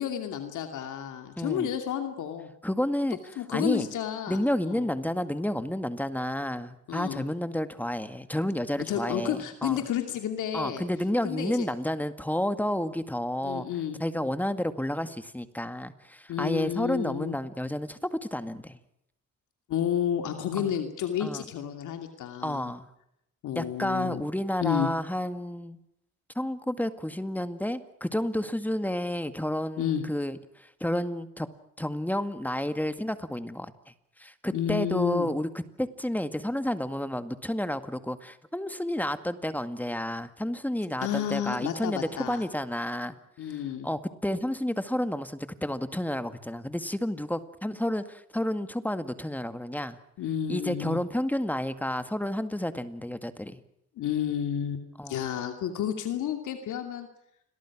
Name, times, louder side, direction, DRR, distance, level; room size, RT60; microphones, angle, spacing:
voice 1, 0.0-2.5 3.4-4.9 6.9-7.2 8.9-10.8 11.2-11.7 13.4-14.0 16.3-17.4 19.7-22.7 23.4-24.2 24.6-24.9 29.8-30.0 34.5-35.3 41.0-42.4 43.4-43.9 50.2-51.0 54.0-57.1, left 10 dB, 80° left, 6 dB, 2.7 m, -31 dB
voice 2, 1.4-1.7 2.6-3.2 3.5-3.9 4.3-9.8 10.5-13.7 14.0-18.8 20.6-20.7 21.2-21.4 22.4-22.8 23.6-25.8 26.4-31.5 31.8-33.7 34.2-35.5 35.8-43.2 43.8-50.0 50.5-53.6 55.0-55.2, left 1 dB, 5° left, 10 dB, 2.0 m, -30 dB
28.5 x 22.5 x 6.2 m, 0.78 s
cardioid pair, 90°, 30 cm